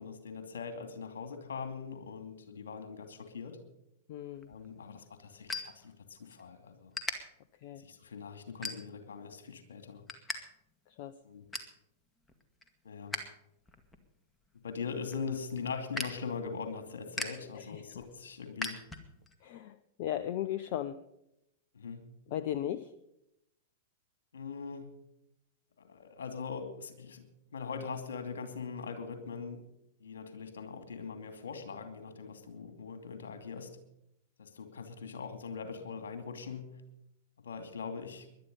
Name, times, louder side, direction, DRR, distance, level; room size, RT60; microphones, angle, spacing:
voice 1, 0.0-3.6 4.5-6.9 7.8-10.0 11.2-11.5 12.8-13.1 14.5-18.8 21.7-22.1 24.3-24.9 25.8-27.2 27.5-29.6 30.0-33.8 34.4-36.8 37.4-38.3, left 5 dB, 70° left, 8 dB, 2.7 m, -41 dB
voice 2, 4.1-4.5 7.6-7.8 10.9-11.1 17.5-18.0 19.4-21.0 22.3-22.9, left 11 dB, 50° left, 13 dB, 0.7 m, -37 dB
sound 1, 4.3-6.4 6.7-7.1 7.7-7.9 8.5-9.2 9.6-10.4 10.7-10.8 11.1-11.8 12.2-13.2 13.6-19.3, left 2 dB, 10° left, 2.0 m, -41 dB
20.0 x 11.5 x 5.4 m, 0.82 s
figure-of-eight pair, 100°, 0 cm